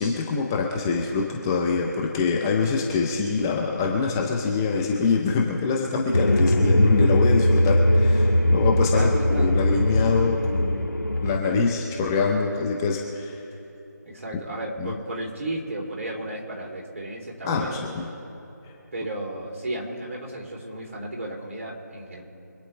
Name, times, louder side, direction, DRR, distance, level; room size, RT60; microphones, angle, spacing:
voice 1, 0.0-10.8 11.2-13.4 14.8-14.9 17.4-18.1, left 4 dB, 10° left, -1 dB, 0.7 m, -25 dB
sound 1, 6.1-11.4, left 1 dB, 85° left, 1.9 m, -20 dB
voice 2, 8.9-9.5 14.0-17.8 18.9-22.2, right 1 dB, 45° right, -2 dB, 3.4 m, -34 dB
25.5 x 9.0 x 3.4 m, 2.9 s
figure-of-eight pair, 165°, 10 cm